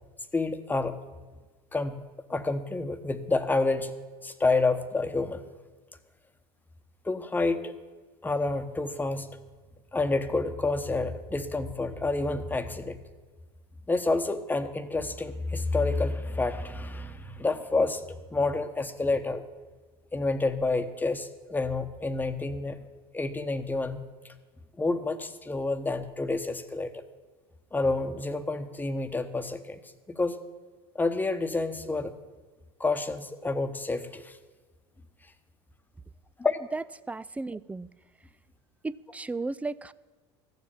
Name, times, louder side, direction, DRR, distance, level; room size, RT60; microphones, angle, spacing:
voice 1, 0.3-1.0 1.7-2.0 2.3-3.9 4.2-5.4 7.0-7.7 8.2-9.3 9.9-13.0 13.9-18.0 18.3-19.4 20.1-22.8 23.1-24.0 24.8-26.9 27.7-29.8 30.1-30.4 30.9-32.1 32.8-34.4 36.4-36.6, left 3 dB, 15° left, 9 dB, 1.1 m, -28 dB
voice 2, 36.7-37.9 38.8-39.9, right 3 dB, 10° right, 17 dB, 0.4 m, -34 dB
14.0 x 7.3 x 8.8 m, 1.3 s
hypercardioid pair, 90°, 13 cm